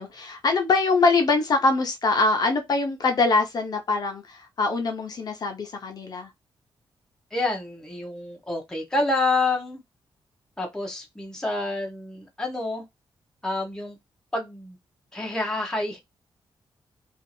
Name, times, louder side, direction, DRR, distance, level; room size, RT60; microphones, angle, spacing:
voice 1, 0.0-6.3, left 3 dB, 45° left, 0.7 m, -23 dB
voice 2, 7.3-9.8 10.6-12.8 13.4-14.0 14.3-14.8 15.1-16.0, left 2 dB, 5° left, 0.7 m, -28 dB
2.7 x 2.4 x 2.6 m
wide cardioid pair, 165°, 9 cm